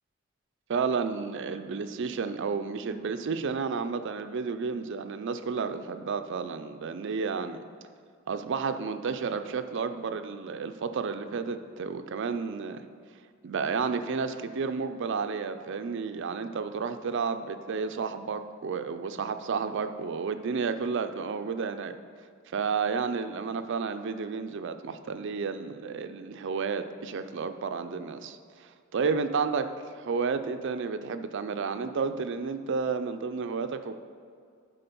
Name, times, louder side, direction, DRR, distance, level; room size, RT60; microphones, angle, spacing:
voice 1, 0.7-7.6 8.3-12.8 13.4-22.0 22.5-29.6 30.0-34.0, right 5 dB, 60° right, 9 dB, 0.4 m, -31 dB
10.0 x 3.8 x 5.4 m, 2.3 s
head